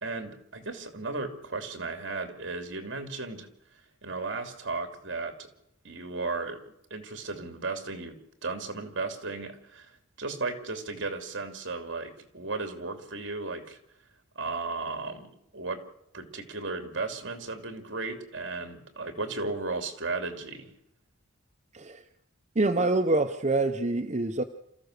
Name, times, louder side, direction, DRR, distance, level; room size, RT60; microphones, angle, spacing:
voice 1, 0.0-3.5 4.0-5.5 5.8-6.6 6.9-9.9 10.2-13.8 14.3-15.8 16.1-20.7, right 3 dB, 60° right, 6 dB, 2.9 m, -35 dB
voice 2, 21.7-22.0 22.5-24.4, right 2 dB, 35° right, 4 dB, 0.8 m, -26 dB
28.5 x 14.5 x 6.7 m, 0.78 s
head